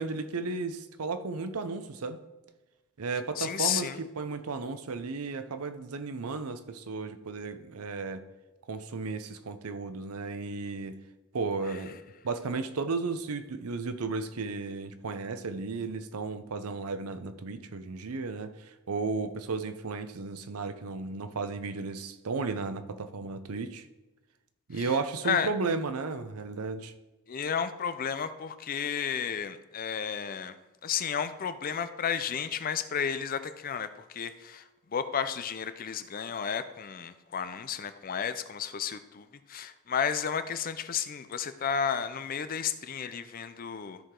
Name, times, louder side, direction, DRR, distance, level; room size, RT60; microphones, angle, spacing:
voice 1, 0.0-2.2 3.0-8.2 8.7-11.0 11.3-12.0 12.2-23.9 24.7-26.9, right 4 dB, 90° right, 10 dB, 0.6 m, -34 dB
voice 2, 3.4-4.0 24.8-24.9 25.2-25.5 27.3-30.5 30.8-34.6 34.9-44.0, left 7 dB, 40° left, 11 dB, 0.5 m, -32 dB
13.5 x 4.8 x 3.8 m, 1.1 s
head